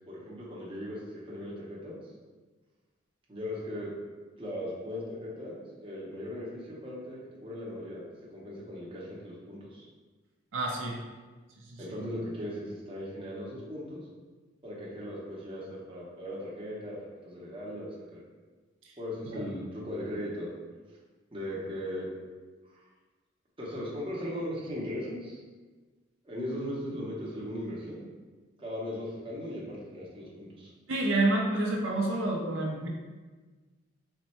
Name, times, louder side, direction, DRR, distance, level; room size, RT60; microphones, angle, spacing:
voice 1, 0.1-2.0 3.3-3.9 4.4-8.0 8.3-9.9 11.8-14.0 14.6-16.9 17.2-17.9 18.1-18.2 19.0-20.5 21.3-22.2 22.7-22.8 23.6-25.4 26.2-28.0 28.6-30.7, equal, 25° right, -5 dB, 0.7 m, -38 dB
voice 2, 10.5-11.0 11.7-11.8 19.3-19.4 30.9-32.9, right 2 dB, 80° right, -1 dB, 0.6 m, -28 dB
3.5 x 2.2 x 4.2 m, 1.3 s
head